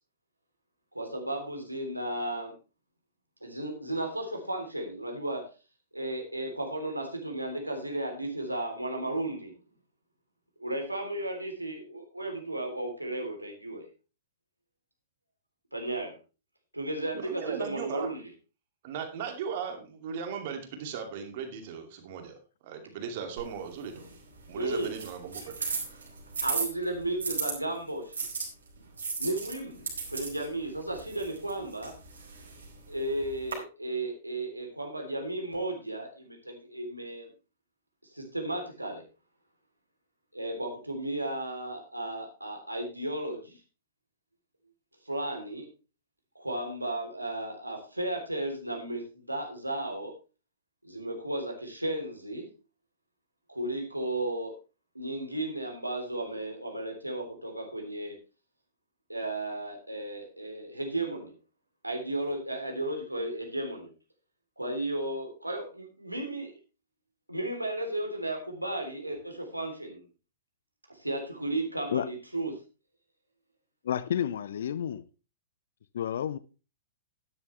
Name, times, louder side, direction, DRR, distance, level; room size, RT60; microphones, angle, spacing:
voice 1, 0.9-2.5 3.4-5.4 5.9-9.5 10.6-13.9 15.7-16.2 16.7-18.2 24.5-24.9 25.6-25.7 26.1-26.2 26.4-28.2 29.2-31.9 32.9-37.3 38.1-39.0 40.3-43.6 45.0-45.7 46.3-50.1 50.8-52.5 53.5-54.6 54.9-58.1 59.1-61.3 61.8-63.9 64.6-66.5 67.3-70.0 71.0-72.5, right 1 dB, 85° right, 3.4 m, -34 dB
voice 2, 17.1-18.1 18.8-22.4 22.6-24.0 24.5-25.6, right 7 dB, 45° right, 2.5 m, -37 dB
sound 1, 23.4-27.5 28.1-33.5, right 4 dB, 65° right, 4.6 m, -37 dB
voice 3, 73.8-75.0 75.9-76.4, left 9 dB, 55° left, 0.7 m, -30 dB
12.5 x 10.5 x 3.3 m
figure-of-eight pair, 105°, 0 cm